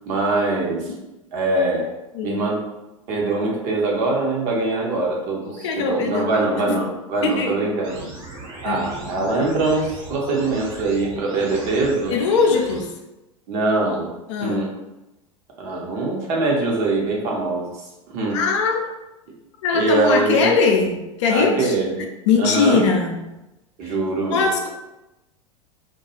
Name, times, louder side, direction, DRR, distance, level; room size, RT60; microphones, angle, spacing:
voice 1, 0.1-0.9 1.3-1.8 2.2-2.6 3.1-8.0 8.6-12.2 13.5-14.1 14.4-14.7 15.6-17.6 18.1-18.4 19.7-20.5 21.3-22.0 22.4-22.9 23.8-24.5, right 2 dB, 45° right, -2 dB, 0.8 m, -23 dB
voice 2, 5.6-6.9 7.2-7.6 8.6-8.8 9.1-9.3 12.1-12.9 14.3-14.7 18.3-18.8 19.6-21.7 22.3-23.2 23.9-24.0 24.3-24.7, left 4 dB, 60° left, 3 dB, 0.5 m, -21 dB
sound 1, 7.8-12.8, right 3 dB, 60° right, 1.1 m, -38 dB
2.3 x 2.2 x 2.9 m, 0.99 s
figure-of-eight pair, 85°, 17 cm